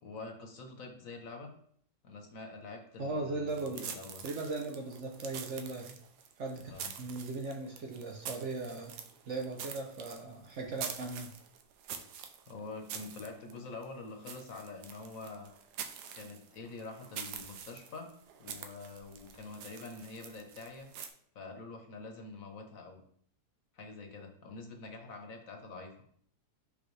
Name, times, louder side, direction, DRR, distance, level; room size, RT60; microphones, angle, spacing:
voice 1, 0.0-1.5 2.0-4.2 6.7-6.9 12.5-15.5 16.1-18.1 18.4-20.9 21.3-23.0 23.7-25.9, left 3 dB, 60° left, 3 dB, 1.3 m, -46 dB
voice 2, 3.0-3.9 4.2-6.0 6.4-6.7 7.0-9.0 9.3-11.3, right 3 dB, 60° right, 2 dB, 0.8 m, -38 dB
sound 1, 3.5-21.1, right 7 dB, 90° right, 1.2 m, -46 dB
5.7 x 5.2 x 3.2 m, 0.63 s
omnidirectional pair, 1.7 m